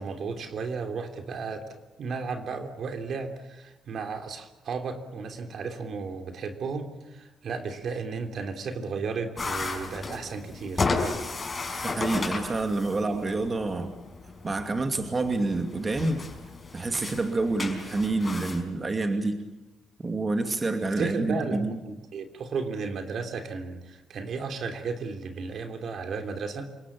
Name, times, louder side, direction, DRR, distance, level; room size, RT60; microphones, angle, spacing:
voice 1, 0.0-10.9 21.0-26.7, right 4 dB, 60° right, 6 dB, 3.2 m, -34 dB
sound 1, 9.4-18.6, left 3 dB, 30° left, 5.4 m, -34 dB
voice 2, 11.8-13.9 14.4-16.2 16.7-19.4 20.0-21.8, right 2 dB, 30° right, 5 dB, 2.5 m, -28 dB
28.0 x 18.0 x 8.6 m, 1.0 s
cardioid pair, 90°, 0 cm